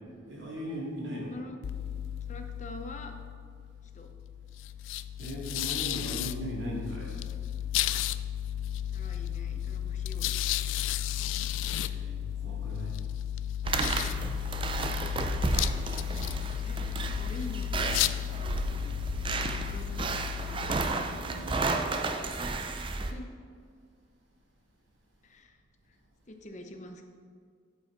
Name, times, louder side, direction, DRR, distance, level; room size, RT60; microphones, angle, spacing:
voice 1, 0.3-1.3 5.2-7.2 11.9-12.2 12.4-12.9 18.5-18.9 21.1-21.7, equal, 70° right, -4 dB, 2.5 m, -38 dB
sound 1, 1.6-21.5, left 11 dB, 80° left, 0.3 m, -34 dB
voice 2, 2.3-3.2 3.9-4.1 8.9-10.7 14.5-14.6 16.6-16.8 17.1-17.8 19.1-20.9 23.0-23.3 25.2-25.6 25.9-26.0 26.3-27.0, left 1 dB, 40° left, 5 dB, 0.6 m, -45 dB
sound 2, 13.6-23.1, right 3 dB, 25° right, 0.4 m, -32 dB
8.7 x 8.2 x 4.0 m, 2.1 s
head